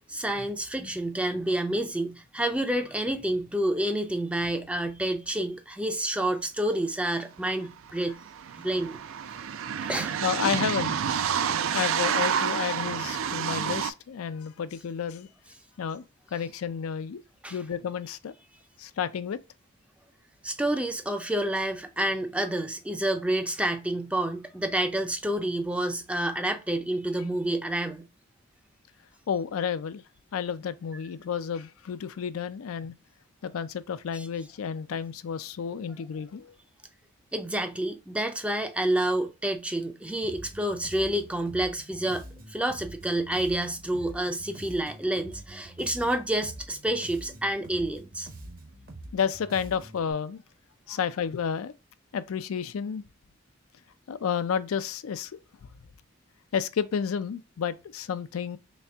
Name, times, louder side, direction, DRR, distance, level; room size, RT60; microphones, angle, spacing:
voice 1, 0.0-8.2 8.6-9.0 9.8-10.2 11.7-11.8 17.4-17.6 20.4-28.1 34.1-34.3 37.3-48.3 50.9-51.0, right 1 dB, 5° right, 0.4 m, -29 dB
sound 1, 7.4-7.5 7.7-13.9, right 8 dB, 70° right, 0.4 m, -29 dB
voice 2, 10.2-11.0 11.7-15.3 15.8-16.0 16.3-17.2 17.5-18.3 18.8-19.4 29.3-30.0 30.3-32.9 33.4-36.5 49.1-50.4 50.9-51.7 52.1-53.0 54.1-55.3 56.5-58.6, left 7 dB, 80° left, 0.4 m, -31 dB
Bass guitar, 40.2-50.1, right 1 dB, 40° right, 0.8 m, -45 dB
4.1 x 3.3 x 2.3 m
head